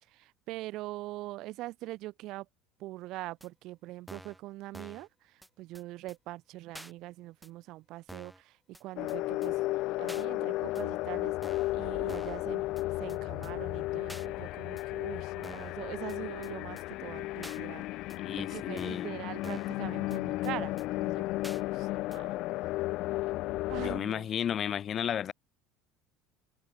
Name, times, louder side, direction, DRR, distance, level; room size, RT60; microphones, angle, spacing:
voice 1, 0.1-2.5 2.8-9.6 10.0-11.3 11.7-12.6 13.0-17.8 18.4-22.3 23.7-24.3, right 17 dB, 60° right, 1.7 m, -43 dB
sound 1, 3.4-3.5 4.1-4.4 4.7-5.1 5.4-5.5 5.7-5.8 6.1-6.2 6.7-6.9 7.4-7.5 8.1-8.4 8.7-8.8 9.1-9.2 9.4-9.5 10.1-10.3 10.8-10.9 11.4-11.8 12.1-12.4 12.8-12.9 13.1-13.2 13.4-13.5 14.1-14.3 14.8-14.9 15.4-15.8 16.1-16.2 16.4-16.5 16.8-16.9 17.4-17.6 18.1-18.2 18.8-19.1 19.4-19.8 20.1-20.2 20.4-20.5 20.8-20.9 21.4-21.6 22.1-22.2, equal, 5° right, 3.9 m, -48 dB
sound 2, 9.0-24.0, left 18 dB, 60° left, 0.4 m, -34 dB
voice 2, 18.1-19.1 23.8-25.3, left 9 dB, 45° left, 3.3 m, -33 dB
hypercardioid pair, 75°, 0 cm